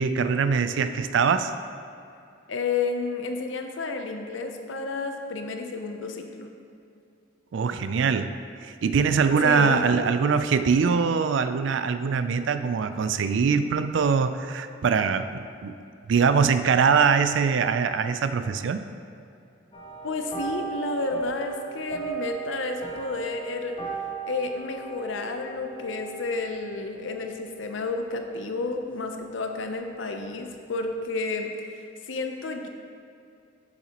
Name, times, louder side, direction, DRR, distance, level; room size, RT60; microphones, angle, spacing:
voice 1, 0.0-1.5 7.5-8.3 8.6-15.7 16.1-18.8, right 5 dB, 70° right, 10 dB, 0.4 m, -23 dB
voice 2, 2.5-6.5 9.4-9.8 20.0-23.8 24.3-31.5 32.1-32.7, left 3 dB, 75° left, 5 dB, 0.6 m, -31 dB
sound 1, 19.7-29.3 29.6-29.9 30.3-30.4, right 5 dB, 25° left, 0.8 m, -37 dB
7.7 x 7.2 x 2.9 m, 2.5 s
head